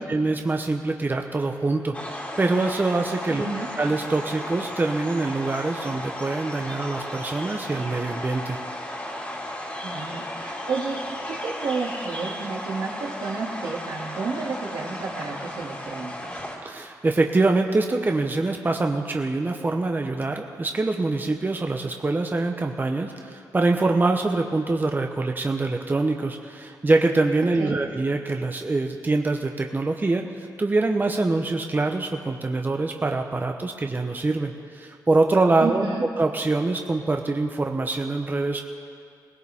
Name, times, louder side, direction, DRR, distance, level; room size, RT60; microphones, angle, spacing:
voice 1, 0.0-3.5 3.8-8.6 16.6-35.8 36.2-38.6, right 3 dB, 25° right, 3 dB, 0.9 m, -24 dB
sound 1, 1.9-16.6, left 1 dB, 20° left, 2.6 m, -34 dB
voice 2, 3.3-3.7 9.8-11.0 11.3-16.4 27.6-27.8 35.6-36.0, right 4 dB, 85° right, -2 dB, 2.4 m, -31 dB
19.0 x 17.5 x 3.6 m, 2.2 s
cardioid pair, 90°, 7 cm